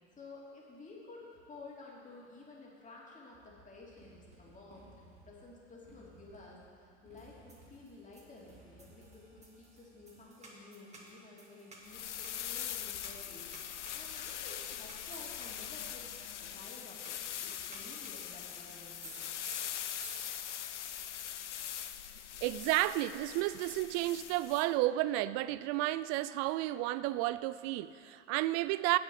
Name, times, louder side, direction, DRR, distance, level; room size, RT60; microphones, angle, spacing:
voice 1, 0.2-6.6 7.0-13.4 13.9-16.1 16.4-19.3, left 3 dB, 20° left, -4 dB, 3.0 m, -53 dB
Motorcycle, 3.3-10.2, right 2 dB, 85° right, 2.8 m, -60 dB
sound 1, 7.2-20.7, right 2 dB, 20° right, 2.4 m, -55 dB
sound 2, 11.8-24.7, left 10 dB, 85° left, 0.5 m, -42 dB
voice 2, 22.4-29.0, right 16 dB, 45° right, 16 dB, 0.4 m, -32 dB
8.2 x 7.1 x 8.5 m, 2.4 s
hypercardioid pair, 75°, 35 cm